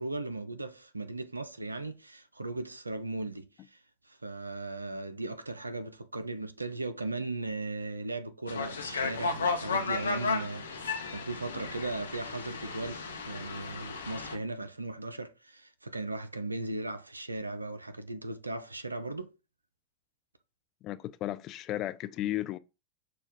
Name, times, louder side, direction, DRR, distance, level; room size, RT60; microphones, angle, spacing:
voice 1, 0.0-3.8 4.1-19.3, right 2 dB, 80° right, 0.5 m, -37 dB
sound 1, 8.5-14.3, left 4 dB, 70° left, 0.7 m, -34 dB
voice 2, 20.8-22.6, left 13 dB, 35° left, 0.3 m, -34 dB
6.1 x 2.3 x 3.5 m
figure-of-eight pair, 90°, 0 cm